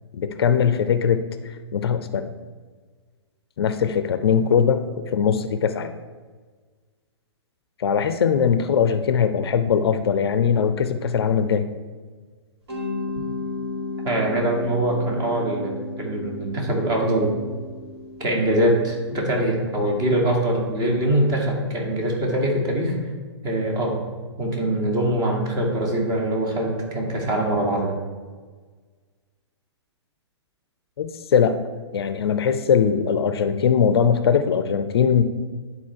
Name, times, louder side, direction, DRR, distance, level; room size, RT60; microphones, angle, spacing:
voice 1, 0.1-2.3 3.6-4.8 5.1-5.9 7.8-11.7 31.0-31.6 31.9-35.2, left 7 dB, 60° left, 10 dB, 0.5 m, -21 dB
Mallet percussion, 12.7-21.4, left 2 dB, 65° right, 2.5 m, -35 dB
voice 2, 14.0-17.4 18.2-23.0 23.4-24.0 24.4-28.0, right 1 dB, 25° right, 0 dB, 1.8 m, -23 dB
11.0 x 4.1 x 4.5 m, 1.4 s
figure-of-eight pair, 115°, 15 cm